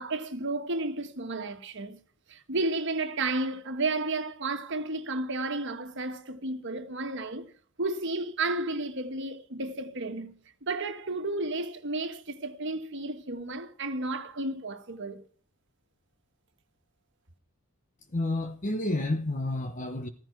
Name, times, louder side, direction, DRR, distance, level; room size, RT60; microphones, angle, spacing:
voice 1, 0.0-2.0 2.3-7.5 7.8-10.3 10.6-15.2, right 2 dB, 55° right, 1.6 m, -32 dB
voice 2, 18.1-20.1, left 2 dB, 35° left, 1.0 m, -30 dB
15.5 x 14.5 x 4.6 m
head